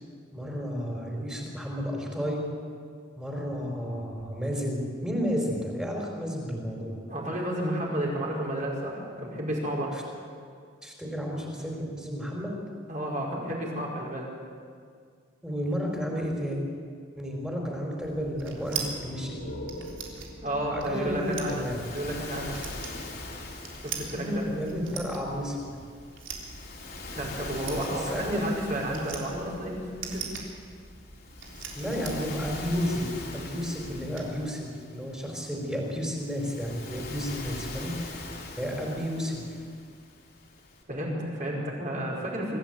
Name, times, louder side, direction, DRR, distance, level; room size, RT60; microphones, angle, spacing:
voice 1, 0.3-2.4 3.2-7.0 9.9-10.0 10.8-12.5 15.4-16.6 17.2-19.4 20.7-21.8 24.1-25.7 28.1-28.4 31.8-33.1 33.3-38.2 38.6-39.5, equal, 5° right, -1 dB, 4.2 m, -32 dB
voice 2, 7.1-10.1 12.9-14.3 20.4-21.6 21.9-22.5 23.8-24.4 27.1-30.3 40.9-42.6, right 1 dB, 40° right, -3 dB, 5.1 m, -31 dB
sound 1, 18.0-34.2, right 5 dB, 85° right, 3.7 m, -42 dB
sound 2, 18.7-22.3, left 1 dB, 80° left, 2.9 m, -44 dB
Waves surf, 20.8-40.8, left 2 dB, 55° left, 4.0 m, -43 dB
24.5 x 14.5 x 9.1 m, 2.1 s
head